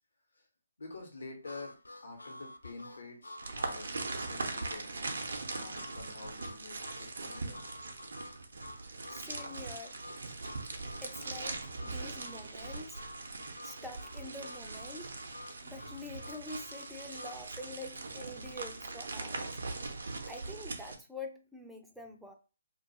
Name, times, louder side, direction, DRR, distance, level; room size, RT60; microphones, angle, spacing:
voice 1, 0.8-3.9 4.2-5.1 5.5-7.6, left 3 dB, 70° left, 1.0 m, -47 dB
Harmonica, 1.4-17.4, left 1 dB, 90° left, 0.3 m, -50 dB
Packing Tape Crinkle Close, 3.4-20.9, right 3 dB, 70° right, 0.5 m, -41 dB
voice 2, 9.1-10.0 11.0-13.0 13.6-15.2 15.6-19.6 20.3-22.3, left 2 dB, ahead, 0.4 m, -46 dB
2.3 x 2.3 x 2.7 m
figure-of-eight pair, 140°, 0 cm